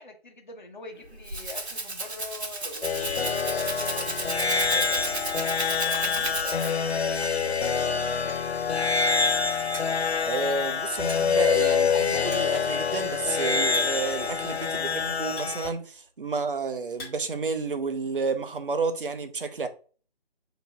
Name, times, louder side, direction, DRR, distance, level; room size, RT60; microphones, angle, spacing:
voice 1, 0.0-5.2 5.8-8.7, left 3 dB, 45° left, 1.0 m, -43 dB
Rattle (instrument), 1.0-6.9, right 2 dB, 85° right, 1.0 m, -34 dB
sound 1, 2.0-2.2 2.7-3.0 3.3-4.2 4.4-4.5 4.8-4.9 5.9-6.0 6.2-6.5 7.0-7.3 8.1-8.6 9.2-9.3 9.7-10.2 11.1-11.5 11.8-12.0 12.2-12.6 12.8-12.9 13.7-14.1 14.9-16.2 16.6-17.4 17.6-18.4, left 1 dB, 20° left, 1.4 m, -45 dB
sound 2, 2.8-15.7, left 6 dB, 75° left, 0.7 m, -26 dB
voice 2, 10.3-19.7, right 4 dB, 55° right, 0.7 m, -30 dB
7.7 x 3.0 x 2.3 m
figure-of-eight pair, 155°, 32 cm